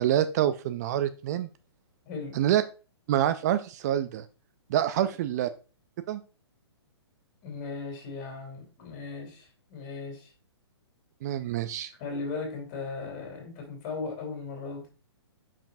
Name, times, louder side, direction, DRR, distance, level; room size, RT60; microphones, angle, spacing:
voice 1, 0.0-1.5 2.3-2.6 3.1-4.2 4.7-5.5 6.1-6.2 11.2-11.9, right 11 dB, 40° right, 12 dB, 0.4 m, -26 dB
voice 2, 2.0-2.5 5.0-5.1 7.4-10.3 12.0-14.9, left 4 dB, 35° left, 1 dB, 3.3 m, -37 dB
6.9 x 5.8 x 2.6 m, 0.33 s
hypercardioid pair, 135°, 14 cm